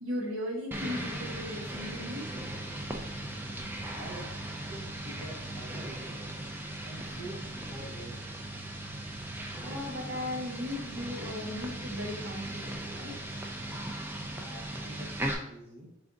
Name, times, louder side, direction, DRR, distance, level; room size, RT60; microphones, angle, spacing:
voice 1, 0.0-2.3 9.6-13.2, left 1 dB, 80° right, -1 dB, 1.1 m, -37 dB
sound 1, 0.7-15.3, right 1 dB, 10° right, 0.4 m, -38 dB
voice 2, 3.9-4.3 4.7-6.2 6.8-8.2 14.4-15.9, right 1 dB, 50° right, -4 dB, 0.7 m, -46 dB
3.8 x 3.4 x 3.8 m, 0.81 s
head